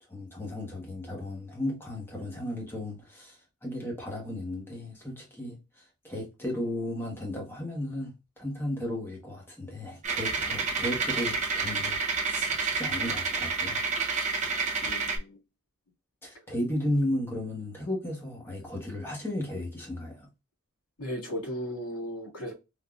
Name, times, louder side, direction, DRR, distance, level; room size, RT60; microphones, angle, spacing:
voice 1, 0.1-13.9 16.2-20.3, left 1 dB, 10° left, 1.1 m, -34 dB
sound 1, 10.0-15.2, right 4 dB, 30° right, 0.6 m, -29 dB
voice 2, 14.8-15.4 21.0-22.5, equal, 85° left, 1.9 m, -36 dB
3.6 x 2.7 x 2.3 m
head